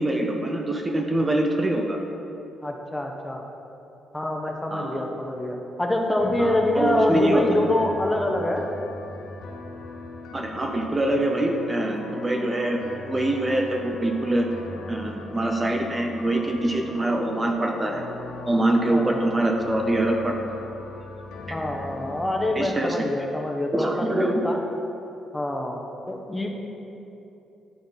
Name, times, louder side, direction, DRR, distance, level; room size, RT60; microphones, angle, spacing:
voice 1, 0.0-2.0 4.7-5.0 6.4-7.5 10.3-14.5 14.9-18.0 18.5-20.4 22.6-23.0 23.7-24.5, right 1 dB, 20° right, 2 dB, 0.6 m, -24 dB
voice 2, 2.6-3.4 4.1-8.7 18.9-19.2 21.5-24.6 25.3-25.8 26.1-26.5, left 1 dB, 10° left, 2 dB, 0.8 m, -25 dB
sound 1, 6.2-22.7, left 3 dB, 85° left, 0.7 m, -40 dB
11.0 x 3.8 x 3.9 m, 2.9 s
cardioid pair, 90°, 0 cm